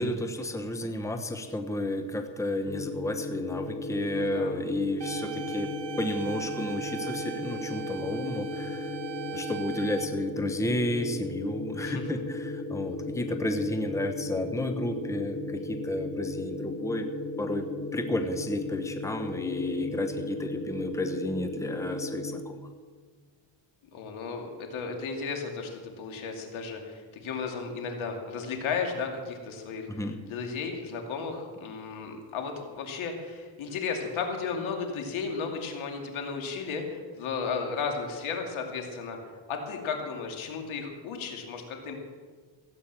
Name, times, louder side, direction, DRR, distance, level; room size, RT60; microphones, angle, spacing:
voice 1, 0.0-9.0 9.3-17.1 17.4-22.6 29.9-30.2, left 1 dB, 5° left, 6 dB, 1.0 m, -32 dB
sound 1, 2.7-22.4, left 2 dB, 30° left, 2.2 m, -36 dB
voice 2, 4.1-4.6 11.8-12.0 23.9-39.2 39.5-42.0, left 5 dB, 85° left, 3 dB, 2.6 m, -34 dB
sound 2, 5.0-10.1, right 13 dB, 60° right, 1.1 m, -40 dB
16.0 x 8.4 x 7.4 m, 1.5 s
cardioid pair, 115°, 47 cm